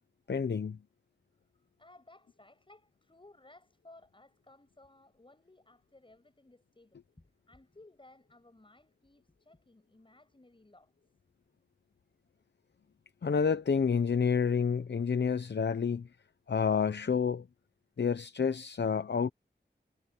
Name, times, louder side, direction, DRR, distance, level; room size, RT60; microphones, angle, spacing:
voice 1, 0.3-0.8 13.2-16.1 16.5-17.5 18.0-19.3, left 6 dB, 70° left, 0.8 m, -29 dB
voice 2, 1.8-10.9, left 2 dB, 25° left, 7.1 m, -59 dB
wide cardioid pair, 95°, 19 cm